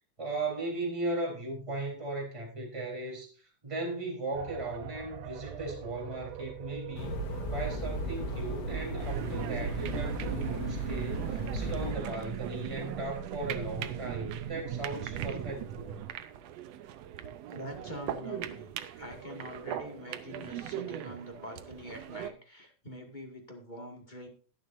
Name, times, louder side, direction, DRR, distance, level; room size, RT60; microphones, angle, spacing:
voice 1, 0.2-7.2 7.5-16.0, right 2 dB, 10° right, -1 dB, 3.5 m, -37 dB
sound 1, 4.3-16.1, right 10 dB, 85° right, 2.2 m, -41 dB
sound 2, 7.0-11.9, equal, 85° left, 2.9 m, -36 dB
sound 3, 9.0-22.3, right 10 dB, 70° right, 1.7 m, -40 dB
voice 2, 17.5-24.3, left 1 dB, 20° left, 2 dB, 1.5 m, -45 dB
21.0 x 7.6 x 2.6 m, 0.37 s
omnidirectional pair, 3.5 m